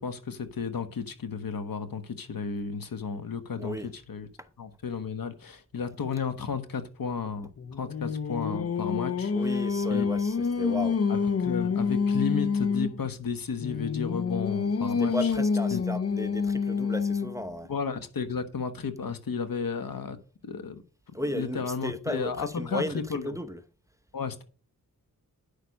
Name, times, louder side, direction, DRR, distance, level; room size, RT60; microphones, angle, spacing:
voice 1, 0.0-3.8 4.1-4.3 4.6-9.3 9.9-10.0 11.1-15.3 15.7-15.8 17.7-20.2 20.4-20.8 21.2-23.4 24.1-24.4, left 5 dB, 75° left, 1.3 m, -33 dB
voice 2, 3.6-3.9 4.4-4.5 9.3-11.0 15.0-17.7 21.1-23.6, equal, 10° right, 0.9 m, -35 dB
Singing, 7.6-13.0 13.6-17.5, left 5 dB, 45° left, 0.6 m, -27 dB
10.0 x 6.8 x 5.2 m
wide cardioid pair, 75°, 35 cm